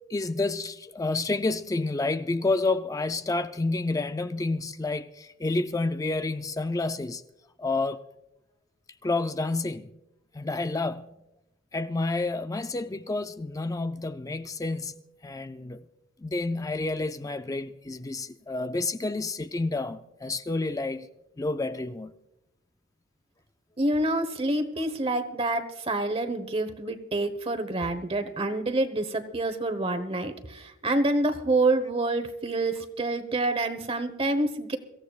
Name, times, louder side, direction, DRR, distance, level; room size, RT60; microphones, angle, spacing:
voice 1, 0.1-7.2 7.6-8.0 9.0-9.9 10.3-11.1 11.7-15.0 15.2-15.8 16.2-21.1 21.4-22.1, left 3 dB, 15° left, 0.4 m, -29 dB
voice 2, 23.8-34.8, right 2 dB, 30° right, 1.1 m, -27 dB
24.5 x 15.0 x 2.4 m
head